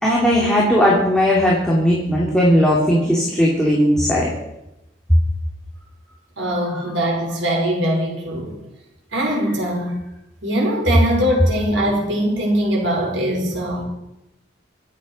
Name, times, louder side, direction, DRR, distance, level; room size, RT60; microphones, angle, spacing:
voice 1, 0.0-4.3 6.7-6.8, equal, 5° left, -5 dB, 2.8 m, -17 dB
voice 2, 6.4-8.5 9.1-10.0 10.4-13.8, equal, 90° right, 0 dB, 5.3 m, -21 dB
24.5 x 8.4 x 5.6 m, 0.90 s
head